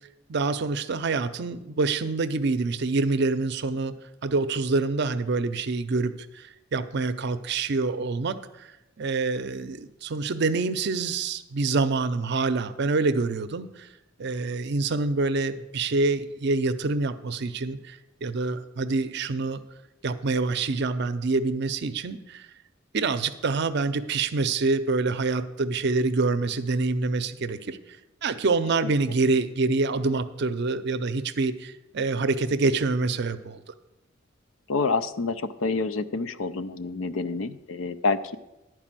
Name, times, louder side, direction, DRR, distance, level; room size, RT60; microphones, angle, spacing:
voice 1, 0.3-3.9 4.2-8.7 9.0-13.9 14.2-18.0 18.2-19.6 20.0-22.5 22.9-27.8 28.2-33.6, right 3 dB, 55° right, 12 dB, 0.5 m, -26 dB
voice 2, 34.7-38.4, left 4 dB, 85° left, 13 dB, 0.5 m, -28 dB
11.0 x 4.7 x 7.5 m, 0.97 s
head